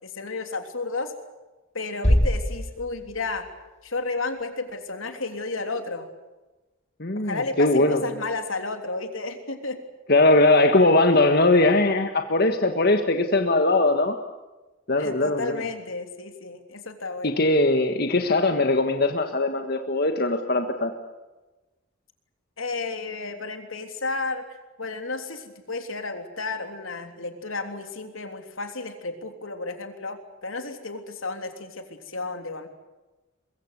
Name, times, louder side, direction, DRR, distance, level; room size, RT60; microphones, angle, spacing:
voice 1, 0.0-1.1 1.7-3.5 3.8-6.1 7.1-9.8 15.0-17.3 22.6-24.4 24.8-32.7, left 3 dB, 80° left, 6 dB, 3.4 m, -32 dB
sound 1, 2.0-4.0, equal, 35° left, 2.1 m, -24 dB
voice 2, 7.0-8.0 10.1-14.2 14.9-15.6 17.2-20.9, left 2 dB, 50° left, 5 dB, 1.7 m, -20 dB
23.0 x 23.0 x 8.3 m, 1.1 s
head